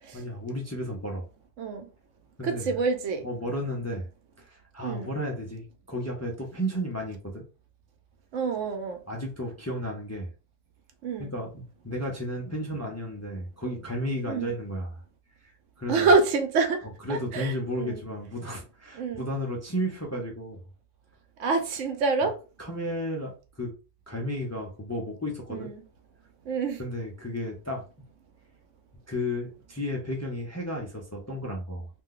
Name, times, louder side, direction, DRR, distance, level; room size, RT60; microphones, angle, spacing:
voice 1, 0.1-1.3 2.4-2.8 3.2-4.1 4.4-7.5 9.1-10.3 11.2-15.0 15.4-15.5 15.8-16.1 17.0-20.6 22.6-23.7 24.1-25.7 26.8-27.8 29.1-31.9, equal, 20° left, 0.4 m, -33 dB
voice 2, 1.6-1.9 2.4-3.3 4.8-5.1 8.3-9.0 11.0-11.3 14.3-14.5 15.9-18.0 18.9-19.3 21.4-22.4 25.5-25.8 26.4-26.8, right 4 dB, 90° right, 1.0 m, -27 dB
2.5 x 2.2 x 3.7 m
omnidirectional pair, 1.2 m